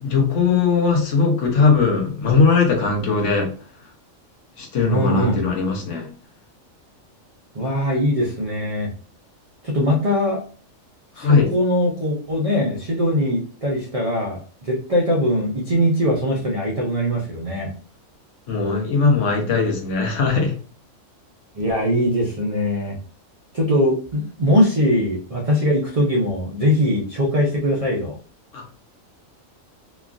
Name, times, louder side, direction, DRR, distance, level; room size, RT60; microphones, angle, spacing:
voice 1, 0.0-3.5 4.6-6.1 11.2-11.5 18.5-20.5 28.5-28.6, left 4 dB, 65° left, 1 dB, 1.0 m, -19 dB
voice 2, 4.9-5.4 7.5-8.9 9.7-10.4 11.2-17.7 21.5-23.0 23.5-28.2, equal, 55° right, -3 dB, 0.4 m, -21 dB
3.0 x 2.3 x 2.4 m, 0.42 s
omnidirectional pair, 1.4 m